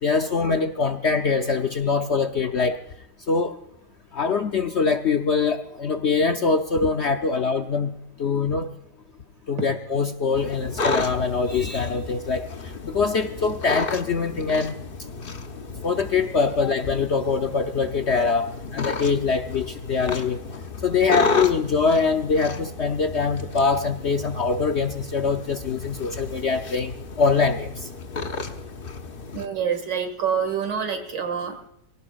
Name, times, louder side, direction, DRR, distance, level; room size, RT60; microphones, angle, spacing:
voice 1, 0.0-2.8 3.3-3.6 4.1-8.7 9.5-12.5 12.8-14.8 15.8-20.4 20.8-27.9, left 4 dB, 55° left, 6 dB, 0.7 m, -23 dB
sound 1, 10.3-29.5, left 3 dB, 40° left, 1.0 m, -32 dB
voice 2, 29.3-31.7, right 7 dB, 80° right, 7 dB, 2.6 m, -27 dB
19.0 x 17.5 x 2.4 m, 0.79 s
omnidirectional pair, 1.8 m